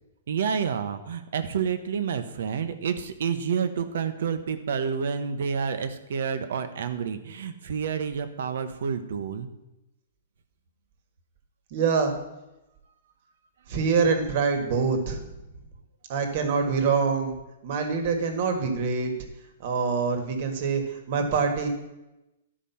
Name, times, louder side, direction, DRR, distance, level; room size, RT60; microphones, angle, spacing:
voice 1, 0.3-9.5, right 6 dB, 70° right, 10 dB, 0.9 m, -29 dB
voice 2, 11.7-12.1 13.7-15.2 16.1-17.4 17.6-19.1 19.6-21.7, right 5 dB, 45° right, 6 dB, 1.5 m, -25 dB
12.0 x 5.0 x 5.7 m, 0.96 s
hypercardioid pair, 165°, 0 cm